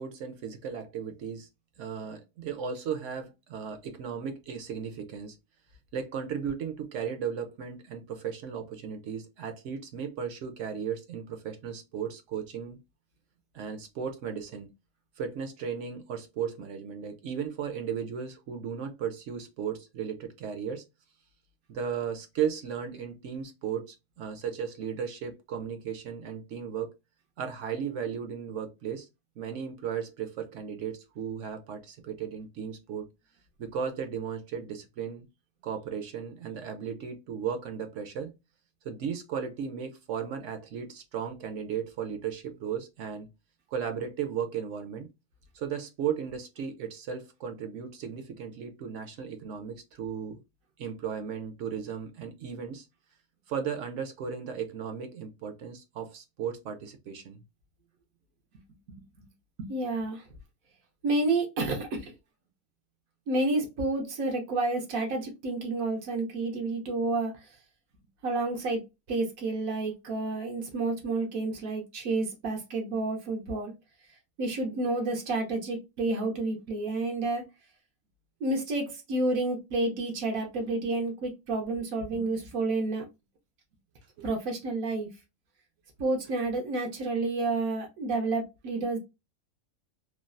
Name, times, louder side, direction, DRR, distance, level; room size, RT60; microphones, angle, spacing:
voice 1, 0.0-1.5 1.8-5.4 5.9-12.8 13.5-14.7 15.2-20.8 21.7-26.9 27.4-29.1 29.4-33.1 33.6-35.3 35.6-38.3 38.8-43.3 43.7-45.1 45.5-50.4 50.8-52.9 53.5-57.4 84.2-84.3, right 7 dB, 70° right, 0.9 m, -35 dB
voice 2, 59.6-60.2 61.0-62.1 63.3-67.3 68.2-68.8 69.1-73.7 74.4-77.4 78.4-83.0 84.2-85.1 86.0-89.0, right 2 dB, 85° right, 1.2 m, -30 dB
3.2 x 2.3 x 2.4 m
omnidirectional pair, 1.4 m